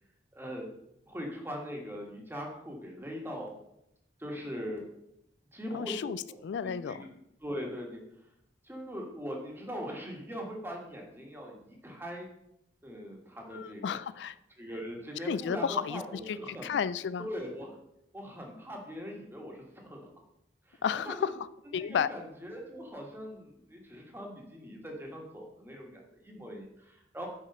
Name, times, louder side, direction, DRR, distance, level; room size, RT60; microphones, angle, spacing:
voice 1, 0.3-0.7 1.0-3.6 4.2-4.9 5.5-6.1 6.6-7.1 7.4-8.3 8.6-12.3 12.8-14.0 14.6-16.8 17.2-17.8 18.1-20.1 20.6-21.3 21.7-27.3, equal, 10° right, 0 dB, 1.4 m, -41 dB
voice 2, 5.7-7.0 13.5-14.3 15.2-16.0 16.3-17.3 20.8-21.3 21.7-22.1, left 7 dB, 75° left, 16 dB, 0.3 m, -32 dB
6.6 x 4.9 x 5.3 m, 0.80 s
head